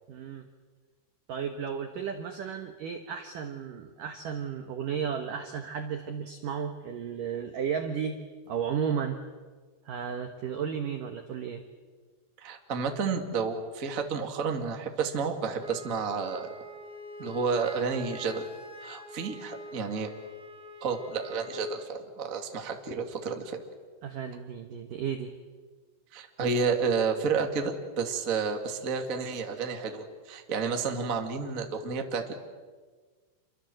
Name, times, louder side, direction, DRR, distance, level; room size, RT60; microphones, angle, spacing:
voice 1, 0.1-0.5 1.3-8.2 8.5-9.2 9.9-11.6 24.0-25.3, right 7 dB, 75° right, 6 dB, 2.0 m, -33 dB
voice 2, 12.4-16.5 17.2-18.4 18.8-20.1 20.8-23.6 26.1-32.4, right 5 dB, 40° right, 4 dB, 1.1 m, -31 dB
Wind instrument woodwind instrument, 15.6-21.9, left 1 dB, ahead, 1.9 m, -46 dB
28.0 x 24.5 x 7.8 m, 1.4 s
omnidirectional pair, 5.8 m